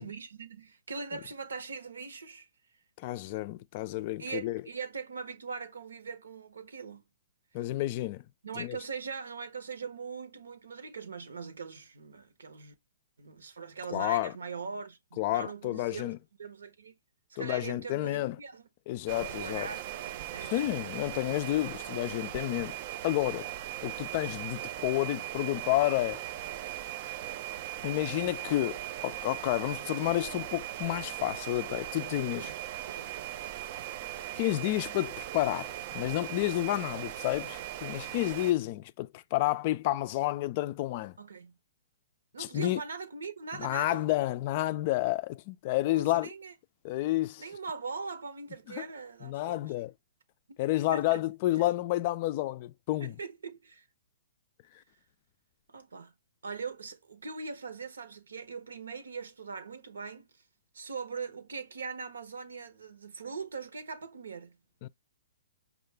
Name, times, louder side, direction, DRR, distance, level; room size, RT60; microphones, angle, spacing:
voice 1, 0.0-2.5 4.2-7.0 8.4-12.7 13.2-16.1 16.4-16.9 17.3-18.7 19.2-20.5 32.4-32.5 32.8-33.1 41.2-41.5 42.3-44.1 45.8-46.5 47.4-49.6 50.5-50.6 50.9-51.2 51.6-51.7 53.0-53.9 55.7-56.1 56.4-60.3 60.7-64.6, right 5 dB, 85° right, 1.0 m, -41 dB
voice 2, 3.0-4.6 7.5-8.2 8.6-8.8 13.9-14.3 15.2-16.2 17.4-18.4 18.9-19.7 20.4-22.8 23.0-23.5 23.8-26.2 27.8-32.5 34.4-41.1 42.4-42.8 43.6-46.3 46.8-47.4 48.7-48.8 49.2-49.9 50.6-53.1 64.8-64.9, left 16 dB, 40° left, 0.3 m, -30 dB
sound 1, 19.1-38.5, right 13 dB, 40° right, 0.4 m, -39 dB
5.5 x 2.4 x 3.3 m
hypercardioid pair, 140°, 0 cm